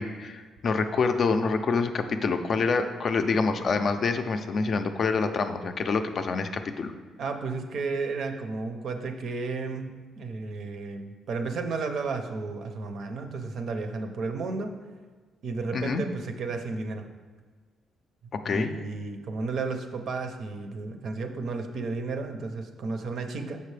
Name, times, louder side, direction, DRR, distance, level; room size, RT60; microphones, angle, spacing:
voice 1, 0.0-6.9 15.7-16.0 18.3-18.7, left 4 dB, 45° left, 8 dB, 0.4 m, -26 dB
voice 2, 7.2-14.7 15.4-17.1 18.4-23.6, right 4 dB, 60° right, 6 dB, 0.6 m, -33 dB
6.7 x 5.5 x 3.2 m, 1.4 s
cardioid pair, 140°, 0 cm